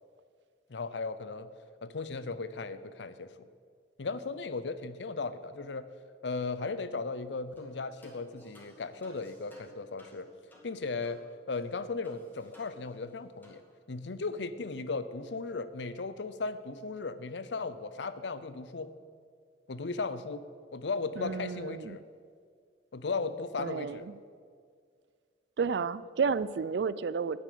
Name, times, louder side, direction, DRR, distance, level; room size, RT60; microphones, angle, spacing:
voice 1, 0.7-1.5 1.8-3.3 4.0-5.9 6.2-10.3 10.6-11.2 11.5-13.6 13.9-18.9 19.7-20.4 20.7-22.0 22.9-24.1, left 4 dB, 85° left, 13 dB, 0.6 m, -36 dB
sound 1, 7.6-7.7 8.0-11.2 11.5-11.6 12.0-13.1 13.4-13.6, equal, 10° left, 2.3 m, -58 dB
voice 2, 21.2-22.0 23.6-24.2 25.6-27.4, right 5 dB, 70° right, 17 dB, 0.4 m, -32 dB
10.0 x 9.5 x 6.8 m, 2.1 s
head